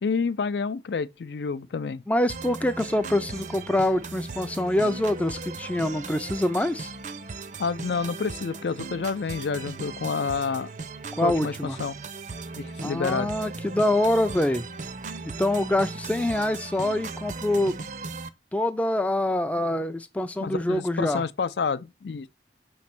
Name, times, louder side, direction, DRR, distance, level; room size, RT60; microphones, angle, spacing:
voice 1, 0.0-2.0 7.6-10.7 11.2-11.5 11.8-12.0 12.6-13.3 20.4-22.3, left 5 dB, 75° left, 0.4 m, -29 dB
voice 2, 2.1-6.9 11.2-11.8 12.8-14.7 15.2-17.8 18.5-21.2, left 1 dB, 10° left, 0.3 m, -25 dB
sound 1, 2.3-18.3, right 4 dB, 45° right, 0.5 m, -37 dB
6.0 x 3.2 x 5.8 m
head